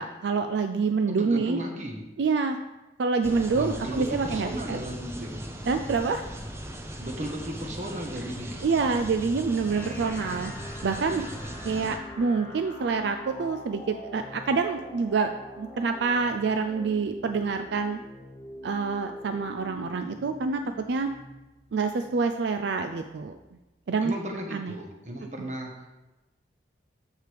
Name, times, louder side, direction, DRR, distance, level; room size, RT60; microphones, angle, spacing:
voice 1, 0.0-1.6 2.2-2.6 3.0-4.8 5.7-6.3 8.6-10.5 10.8-11.3 11.6-15.3 15.6-18.0 18.6-20.6 20.9-21.1 21.7-23.3 23.9-24.1 24.5-24.7, right 4 dB, 75° right, 7 dB, 0.4 m, -27 dB
voice 2, 1.1-2.0 3.5-5.4 7.0-8.7 24.0-26.0, equal, 40° right, 2 dB, 1.2 m, -35 dB
sound 1, 3.2-12.0, equal, 15° right, 0.6 m, -39 dB
sound 2, 9.7-23.7, left 1 dB, 10° left, 1.0 m, -44 dB
13.5 x 4.7 x 3.4 m, 1.1 s
head